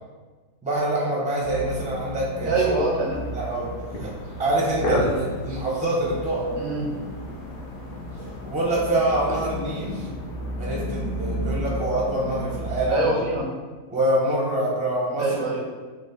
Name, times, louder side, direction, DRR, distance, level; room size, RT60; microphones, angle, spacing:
voice 1, 0.6-2.5 3.3-3.7 4.0-4.1 4.4-6.5 8.5-10.1 10.6-13.1 13.9-15.3, right 1 dB, 10° right, -4 dB, 0.4 m, -25 dB
sound 1, 1.4-12.9, equal, 85° left, 1.4 m, -34 dB
voice 2, 2.4-3.2 6.6-6.9 12.9-13.5 15.2-15.6, right 2 dB, 70° right, -2 dB, 0.8 m, -24 dB
sound 2, 3.9-9.4, left 1 dB, 55° left, 0.6 m, -33 dB
4.1 x 2.4 x 3.8 m, 1.4 s
omnidirectional pair, 1.7 m